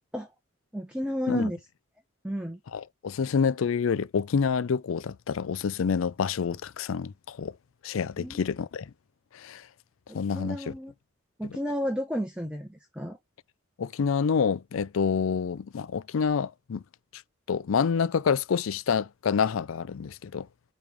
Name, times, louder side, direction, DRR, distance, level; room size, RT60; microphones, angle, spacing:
voice 1, 0.7-1.6 2.2-2.6 8.2-8.5 10.1-10.9 11.4-13.2, equal, 5° right, 0.8 m, -32 dB
voice 2, 2.7-7.5 7.8-8.9 9.3-9.6 10.1-10.7 13.8-16.8 17.5-20.5, left 6 dB, 80° left, 0.4 m, -27 dB
8.7 x 3.2 x 3.4 m
head